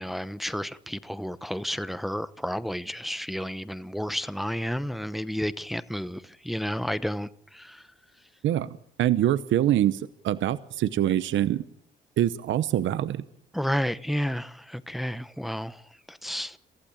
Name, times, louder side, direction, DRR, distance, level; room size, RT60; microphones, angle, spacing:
voice 1, 0.0-7.8 13.5-15.8 16.1-16.6, equal, ahead, 0.9 m, -31 dB
voice 2, 8.4-11.6 12.2-13.2, right 12 dB, 75° right, 0.9 m, -25 dB
23.5 x 15.0 x 8.8 m
cardioid pair, 90°, 20 cm